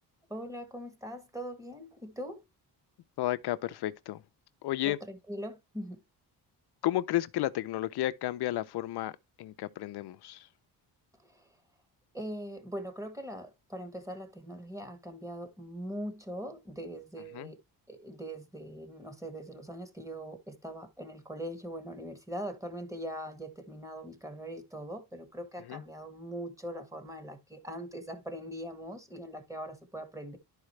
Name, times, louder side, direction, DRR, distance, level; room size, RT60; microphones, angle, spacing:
voice 1, 0.3-2.4 4.8-6.0 11.2-11.5 12.1-17.6 17.9-30.4, equal, 10° right, 1.6 m, -41 dB
voice 2, 3.2-4.2 4.6-5.0 6.8-10.5 17.3-17.5 25.7-25.8, left 14 dB, 70° left, 0.6 m, -32 dB
11.5 x 4.8 x 3.2 m
cardioid pair, 160°, 40 cm